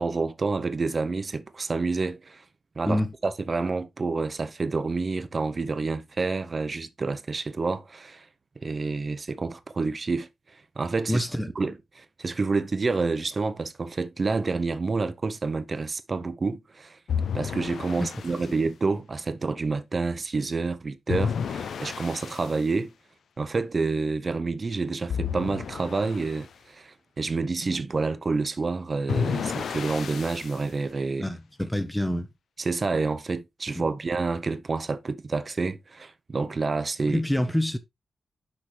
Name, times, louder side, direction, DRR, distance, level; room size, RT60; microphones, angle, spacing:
voice 1, 0.0-2.4 2.8-8.3 8.6-10.3 10.8-11.2 11.6-17.0 17.3-22.9 23.4-31.3 32.6-37.2, right 4 dB, 35° right, 0.6 m, -28 dB
voice 2, 11.1-11.5 18.0-18.6 31.2-32.3 33.8-33.9 37.1-37.8, left 1 dB, 5° left, 0.7 m, -27 dB
sound 1, 17.1-18.5 21.1-22.6 25.1-26.5 29.1-30.6, left 7 dB, 85° left, 0.5 m, -31 dB
6.2 x 5.9 x 3.2 m
wide cardioid pair, 160°, 0 cm